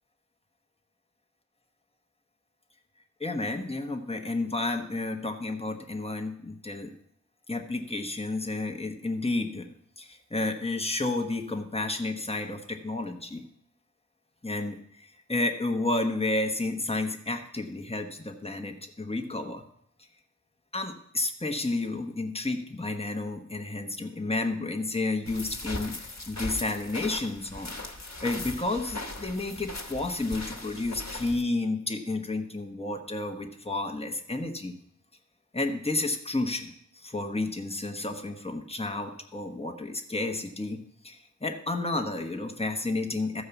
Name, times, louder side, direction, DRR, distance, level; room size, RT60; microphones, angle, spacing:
voice 1, 3.2-6.9 7.5-9.7 10.0-13.4 14.4-19.6 20.7-25.9 26.3-27.7 28.2-34.7 35.5-40.8 41.0-43.4, left 2 dB, 20° left, 4 dB, 1.1 m, -31 dB
sound 1, 25.3-31.4, left 2 dB, 65° left, 1.2 m, -39 dB
13.5 x 4.8 x 6.9 m, 0.69 s
wide cardioid pair, 40°, 30 cm